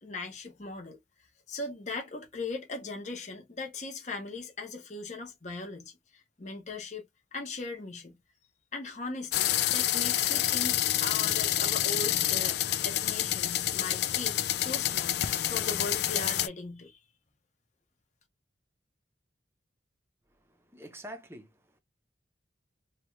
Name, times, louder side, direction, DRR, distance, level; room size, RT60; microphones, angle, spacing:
voice 1, 0.0-1.0 1.5-7.0 7.3-8.2 8.7-14.4 14.6-17.0, left 3 dB, 40° left, 0.8 m, -39 dB
sound 1, 9.3-16.5, left 12 dB, 60° left, 0.3 m, -28 dB
voice 2, 20.3-21.8, equal, 15° right, 0.6 m, -47 dB
3.0 x 2.3 x 3.0 m
head